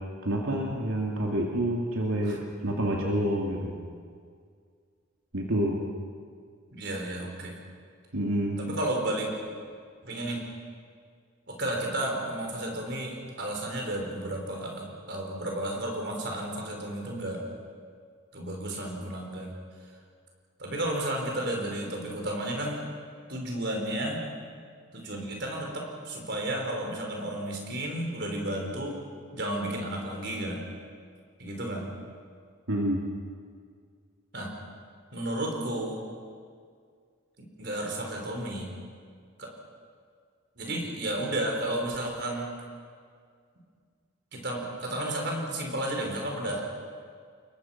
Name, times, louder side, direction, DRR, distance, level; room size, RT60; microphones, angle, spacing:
voice 1, 0.2-2.4 2.6-3.8 5.3-5.8 8.1-8.6 32.7-33.0, right 1 dB, 85° right, -1 dB, 2.7 m, -28 dB
voice 2, 6.7-7.5 8.6-9.3 10.0-10.4 11.5-17.4 18.3-19.5 20.6-22.8 23.3-24.2 24.9-28.9 29.3-30.6 31.4-31.9 34.3-34.5 35.1-36.0 37.4-38.7 39.4-39.5 40.6-42.5 44.3-46.6, right 1 dB, 50° right, 1 dB, 5.1 m, -32 dB
28.0 x 22.5 x 6.0 m, 2.1 s
head